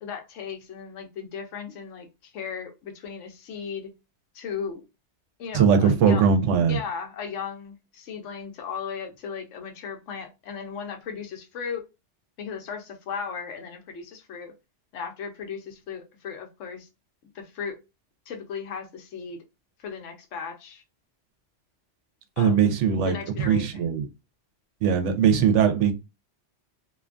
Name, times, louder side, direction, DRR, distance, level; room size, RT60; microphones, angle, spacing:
voice 1, 0.0-3.9 4.3-4.8 5.4-6.2 6.6-11.8 12.4-14.5 14.9-16.9 17.3-17.8 18.3-19.4 19.8-20.8 22.4-22.6 23.0-23.8, left 6 dB, 90° left, 1.0 m, -36 dB
voice 2, 5.5-6.8 22.4-24.1 24.8-25.9, right 7 dB, 85° right, 0.9 m, -20 dB
2.6 x 2.2 x 2.4 m
omnidirectional pair, 1.2 m